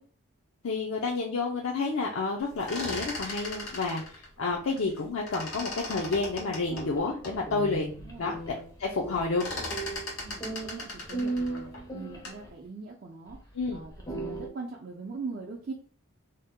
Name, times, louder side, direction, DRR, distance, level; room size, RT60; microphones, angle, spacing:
voice 1, 0.6-8.3 8.8-9.4 13.5-13.8, left 3 dB, 65° left, -1 dB, 0.4 m, -30 dB
sound 1, 2.4-5.0 5.3-7.4 7.9-8.0 8.3-8.7 8.9-12.5, left 2 dB, 85° left, 1.3 m, -38 dB
sound 2, 6.6-12.5 13.3-13.4 13.8-14.5, right 2 dB, 15° left, 0.5 m, -37 dB
voice 2, 8.0-8.3 10.2-11.7 11.9-13.9 14.2-15.7, right 4 dB, 45° right, -2 dB, 0.4 m, -41 dB
2.7 x 2.1 x 3.5 m, 0.42 s
head